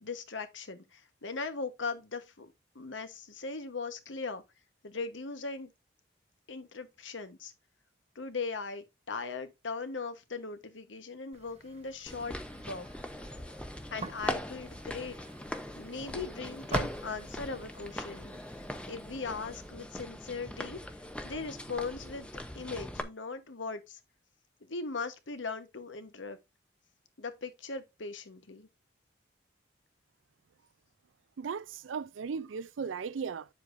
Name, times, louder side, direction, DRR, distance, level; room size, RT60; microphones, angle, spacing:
voice 1, 0.0-4.4 4.8-5.7 6.5-7.5 8.1-12.9 13.9-15.2 15.7-20.8 21.2-22.3 22.5-24.0 24.6-26.4 27.2-28.7, left 4 dB, 80° left, 1.1 m, -39 dB
sound 1, 11.3-19.9, right 2 dB, 35° right, 0.8 m, -45 dB
sound 2, 12.1-23.0, left 1 dB, 5° left, 0.6 m, -40 dB
voice 2, 31.4-33.5, right 6 dB, 90° right, 0.4 m, -36 dB
8.2 x 7.4 x 2.6 m
head